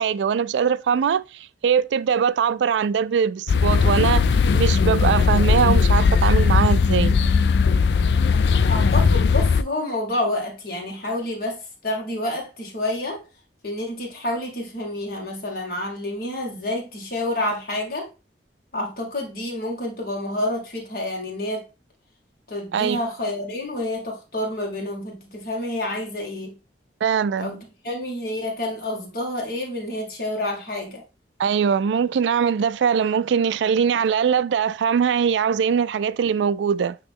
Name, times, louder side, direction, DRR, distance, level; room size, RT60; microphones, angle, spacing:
voice 1, 0.0-4.2 4.5-7.2 22.7-23.0 27.0-27.6 31.4-37.0, right 7 dB, 90° right, 0.3 m, -21 dB
sound 1, 3.5-9.6, left 5 dB, 70° left, 0.4 m, -18 dB
voice 2, 8.7-13.2 13.6-18.1 18.7-21.7 22.5-26.6 27.4-31.0, left 1 dB, 55° left, 2.1 m, -29 dB
8.7 x 3.0 x 3.6 m
head